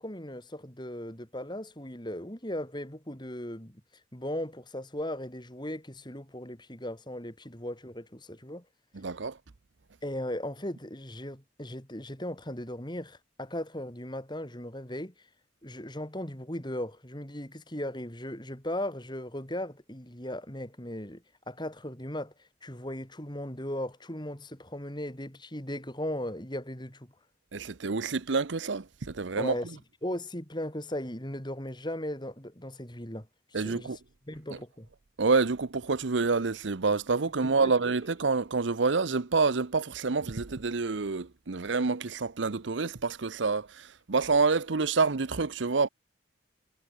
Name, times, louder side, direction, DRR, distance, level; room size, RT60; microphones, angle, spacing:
voice 1, 0.0-3.8 4.1-8.6 10.0-15.3 15.6-27.1 29.4-34.0 34.3-34.9 37.4-38.0, left 1 dB, 25° left, 4.9 m, -37 dB
voice 2, 8.9-9.4 27.5-29.5 33.5-34.0 35.2-45.9, right 4 dB, 80° right, 0.8 m, -27 dB
head